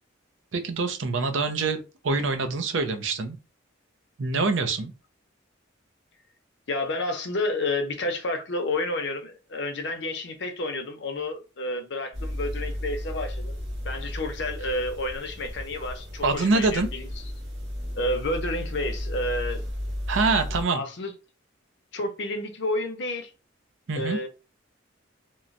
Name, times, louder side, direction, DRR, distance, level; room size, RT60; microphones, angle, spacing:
voice 1, 0.5-3.4 4.2-4.9 16.2-16.9 20.1-20.8 23.9-24.2, right 3 dB, 75° right, 0.6 m, -25 dB
voice 2, 6.7-13.6 13.8-17.1 17.9-19.6 20.7-21.1 21.9-23.3 24.0-24.3, left 2 dB, 60° left, 0.6 m, -30 dB
sound 1, 12.1-20.6, left 1 dB, 60° right, 1.3 m, -34 dB
3.0 x 2.1 x 2.5 m
head